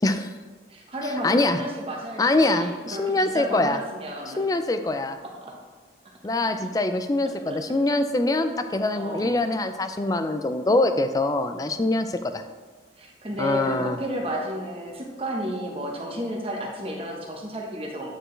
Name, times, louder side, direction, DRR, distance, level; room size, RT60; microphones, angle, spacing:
voice 1, 0.7-4.4 5.2-5.6 6.4-6.5 7.2-7.6 8.9-9.4 13.0-18.1, equal, 30° right, -1 dB, 1.0 m, -33 dB
voice 2, 1.2-1.6 2.2-3.8 4.3-5.2 6.2-12.4 13.4-14.0, left 2 dB, 20° left, 8 dB, 0.3 m, -24 dB
8.7 x 4.4 x 3.2 m, 1.4 s
head